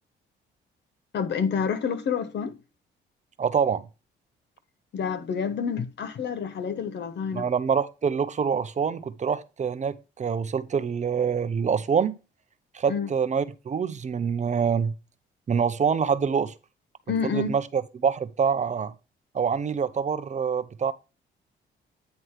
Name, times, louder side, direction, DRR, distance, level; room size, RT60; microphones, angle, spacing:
voice 1, 1.1-2.6 4.9-7.5 12.9-13.1 17.1-17.5, left 6 dB, 60° left, 1.1 m, -28 dB
voice 2, 3.4-3.8 7.3-12.1 12.7-14.9 15.5-16.5 17.3-18.9 19.3-20.9, right 6 dB, 35° right, 0.6 m, -25 dB
9.2 x 3.2 x 5.7 m
cardioid pair, 90°, 20 cm